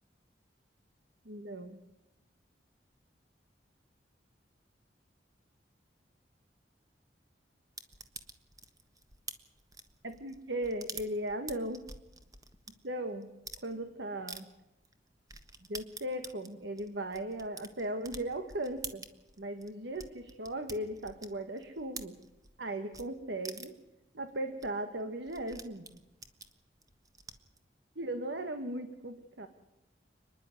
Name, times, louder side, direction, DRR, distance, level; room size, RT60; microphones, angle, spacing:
voice 1, 1.2-1.8 10.0-11.8 12.8-13.3 13.6-14.5 15.7-19.0 19.4-22.2 22.6-23.7 24.1-26.0 27.9-29.5, right 1 dB, 80° right, 8 dB, 1.5 m, -37 dB
sound 1, 7.8-12.7 13.2-13.6 14.3-14.4 14.8-14.9 15.3-22.6 22.9-23.1 23.4-23.9 24.3-24.4 24.6-24.7 24.9-27.6, right 4 dB, 20° right, 1.4 m, -47 dB
29.5 x 11.0 x 9.5 m, 0.97 s
head